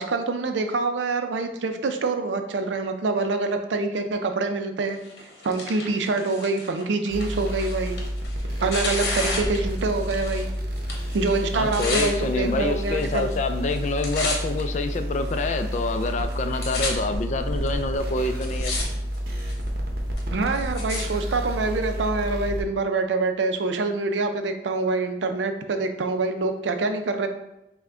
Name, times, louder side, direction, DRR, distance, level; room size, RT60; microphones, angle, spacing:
voice 1, 0.0-5.0 5.4-8.0 8.6-10.5 11.1-13.3 20.3-27.3, right 3 dB, 85° right, 6 dB, 0.5 m, -25 dB
Tearing, 5.0-10.5 10.8-12.1 12.9-13.4 13.7-14.6 15.3-15.4 16.1-16.2 16.3-16.9 17.7-17.8 18.3-18.8 19.1-19.6 20.2-21.0 21.8-21.9, left 3 dB, 60° left, 1.0 m, -32 dB
sound 1, 7.1-22.6, equal, 55° right, 0.7 m, -30 dB
voice 2, 11.5-18.7, left 3 dB, 40° left, 8 dB, 0.3 m, -27 dB
5.7 x 2.2 x 3.6 m, 0.91 s
head